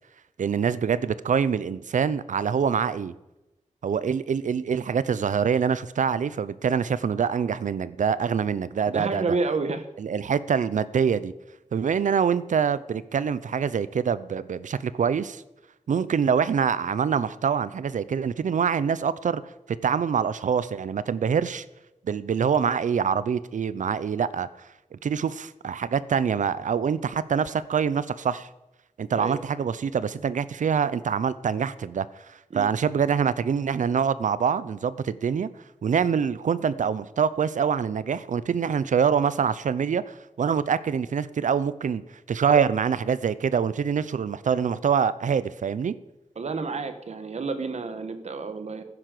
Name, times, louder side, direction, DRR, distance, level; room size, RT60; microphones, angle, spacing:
voice 1, 0.4-3.1 3.8-9.2 10.0-11.3 11.7-15.4 15.9-19.4 19.8-21.6 22.0-24.5 24.9-28.5 29.0-35.5 35.8-42.0 42.3-45.9, right 7 dB, 85° right, 17 dB, 0.7 m, -25 dB
voice 2, 8.9-9.8 29.1-29.4 32.5-32.7 46.3-48.8, right 4 dB, 60° right, 9 dB, 1.5 m, -29 dB
15.0 x 9.9 x 6.7 m, 0.95 s
wide cardioid pair, 140°, 13 cm